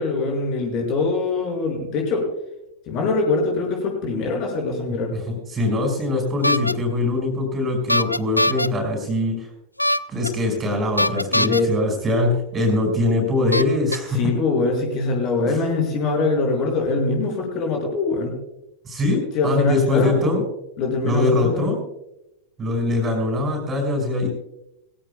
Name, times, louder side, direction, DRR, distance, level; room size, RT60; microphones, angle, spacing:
voice 1, 0.0-2.3 2.9-5.1 11.3-11.7 14.1-18.4 19.3-20.4 20.8-21.7, left 3 dB, 40° left, 1 dB, 5.9 m, -23 dB
voice 2, 4.9-9.5 10.1-14.3 15.4-15.6 18.8-20.4 21.0-21.8 22.6-24.3, left 2 dB, 20° right, 3 dB, 5.5 m, -22 dB
sound 1, 6.4-6.7 7.9-8.7 9.8-10.3 11.0-11.6 12.7-12.8 13.5-14.0, left 1 dB, 85° left, 0.3 m, -21 dB
21.5 x 16.5 x 2.3 m, 0.86 s
figure-of-eight pair, 90°, 0 cm